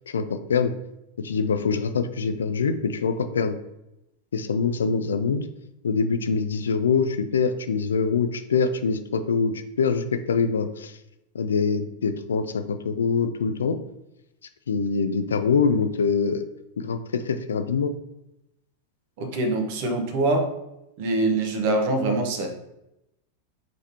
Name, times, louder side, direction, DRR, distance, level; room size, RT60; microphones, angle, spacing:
voice 1, 0.1-0.7 1.2-3.6 4.3-5.4 5.8-11.0 11.3-13.8 14.7-16.4 16.8-17.9, left 5 dB, 70° left, 10 dB, 0.4 m, -24 dB
voice 2, 19.2-20.5 21.0-22.5, right 2 dB, 50° right, 5 dB, 0.9 m, -24 dB
5.1 x 3.5 x 2.8 m, 0.86 s
figure-of-eight pair, 90°, 0 cm